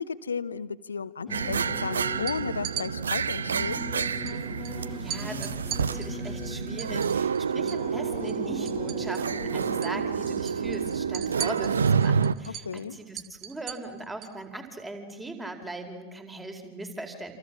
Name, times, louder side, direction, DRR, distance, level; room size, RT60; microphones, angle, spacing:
voice 1, 0.0-3.8 7.4-7.8 12.5-13.0, left 5 dB, 75° left, 15 dB, 1.2 m, -34 dB
Singing / Musical instrument, 1.3-13.1, left 5 dB, 20° left, 0.8 m, -42 dB
sound 1, 1.3-12.4, right 6 dB, 70° right, 0.8 m, -28 dB
sound 2, 2.3-2.9 4.3-4.4 4.6-4.8 5.1-7.9 8.2-9.4 9.6-10.0 10.3-14.4, right 10 dB, 35° right, 1.8 m, -39 dB
voice 2, 4.8-17.4, right 2 dB, 10° right, 6 dB, 4.5 m, -40 dB
28.0 x 27.5 x 7.5 m, 1.2 s
figure-of-eight pair, 90°, 0 cm